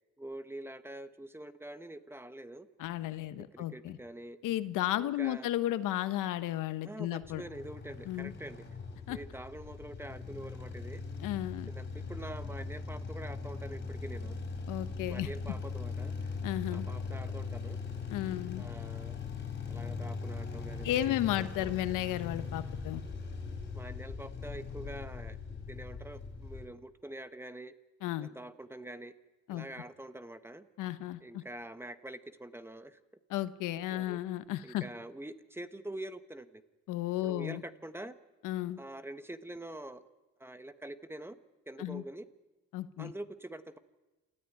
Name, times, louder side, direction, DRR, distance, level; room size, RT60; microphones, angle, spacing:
voice 1, 0.2-2.7 3.5-4.4 5.0-5.5 6.8-8.6 9.1-11.0 11.7-14.4 15.1-16.3 16.7-17.8 18.6-19.2 19.7-21.7 23.7-25.4 25.7-27.7 28.2-29.1 29.5-30.7 31.2-33.0 33.9-34.2 34.6-36.6 37.2-38.1 38.8-40.0 40.4-41.4 41.7-42.3 43.0-43.8, right 1 dB, 10° right, 11 dB, 1.1 m, -45 dB
voice 2, 2.8-4.0 4.4-7.4 8.1-8.3 9.1-9.2 11.2-11.7 14.7-15.3 16.4-16.9 18.1-18.6 20.8-23.0 28.0-28.3 29.5-29.7 30.8-31.4 33.3-34.9 36.9-37.6 38.4-38.8 41.8-42.0 42.7-43.1, left 14 dB, 80° left, 13 dB, 1.2 m, -34 dB
sound 1, 7.2-26.7, left 4 dB, 35° left, 5.2 m, -40 dB
28.5 x 13.5 x 9.4 m, 1.1 s
cardioid pair, 120°, 31 cm